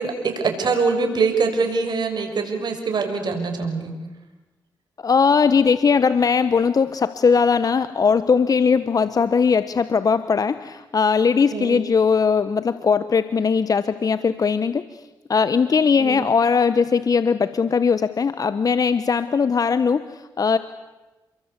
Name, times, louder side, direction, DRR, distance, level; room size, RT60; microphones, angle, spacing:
voice 1, 0.0-3.9 11.5-11.8 16.0-16.3, right 4 dB, 60° right, 5 dB, 6.5 m, -23 dB
voice 2, 5.0-14.8 15.3-20.6, left 5 dB, 45° left, 13 dB, 1.2 m, -19 dB
30.0 x 23.5 x 8.3 m, 1.1 s
cardioid pair, 65°, 8 cm